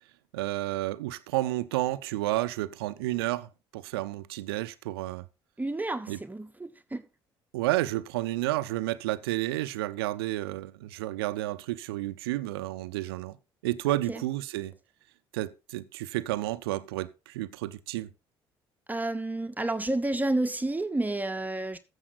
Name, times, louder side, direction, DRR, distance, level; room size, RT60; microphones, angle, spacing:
voice 1, 0.3-5.2 6.1-6.2 7.5-13.4 13.6-14.7 15.3-18.1, right 16 dB, 80° right, 0.7 m, -31 dB
voice 2, 5.6-7.0 14.1-14.2 18.9-21.8, right 2 dB, 15° right, 1.1 m, -30 dB
14.5 x 7.4 x 4.1 m
hypercardioid pair, 55°, 13 cm